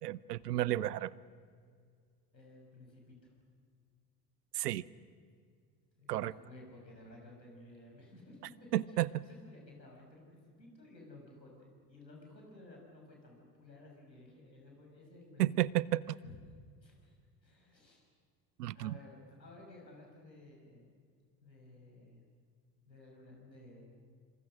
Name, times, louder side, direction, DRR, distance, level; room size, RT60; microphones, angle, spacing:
voice 1, 0.0-1.1 4.5-4.8 6.1-6.3 8.7-9.1 15.4-16.2 18.6-18.9, right 14 dB, 70° right, 22 dB, 0.8 m, -32 dB
voice 2, 2.3-3.3 6.0-8.4 8.7-15.4 16.2-16.4 16.8-17.2 17.4-18.0 18.7-20.9 21.4-22.2 22.8-23.9, left 2 dB, 90° left, 0 dB, 6.1 m, -55 dB
26.5 x 26.5 x 6.3 m, 2.1 s
figure-of-eight pair, 70°, 50 cm